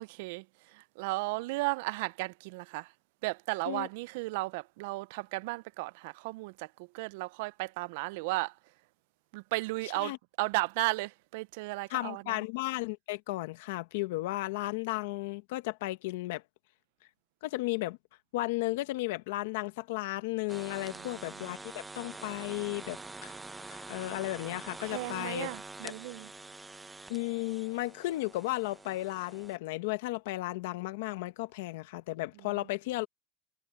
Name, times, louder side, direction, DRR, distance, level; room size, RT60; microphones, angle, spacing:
voice 1, 0.0-2.9 3.2-8.5 9.3-12.4 20.9-21.5 24.8-26.3 32.5-32.6, right 23 dB, 75° right, 0.4 m, -35 dB
voice 2, 11.9-16.4 17.4-18.0 18.3-23.3 23.7-25.5 25.8-25.9 27.1-33.1, left 19 dB, 85° left, 1.2 m, -34 dB
sound 1, 20.5-29.6, right 3 dB, 10° right, 0.7 m, -46 dB
supercardioid pair, 130°, 0 cm